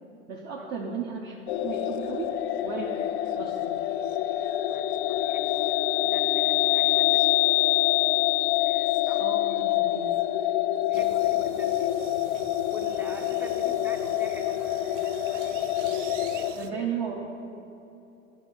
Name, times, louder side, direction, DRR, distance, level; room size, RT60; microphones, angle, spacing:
voice 1, 0.3-2.3 2.6-2.9 3.3-3.8 9.2-10.2 10.9-11.1 16.6-17.5, right 6 dB, 40° right, -2 dB, 0.9 m, -35 dB
sound 1, 1.5-16.5, left 14 dB, 55° left, 0.5 m, -26 dB
voice 2, 4.7-5.7 6.0-7.2 8.0-8.3 8.6-9.2 10.9-11.9 12.7-14.7 16.2-16.9, right 1 dB, 5° right, 5 dB, 0.5 m, -45 dB
sound 2, 10.9-16.7, right 8 dB, 70° right, 0.6 m, -46 dB
10.5 x 4.2 x 6.4 m, 2.8 s
hypercardioid pair, 95°, 39 cm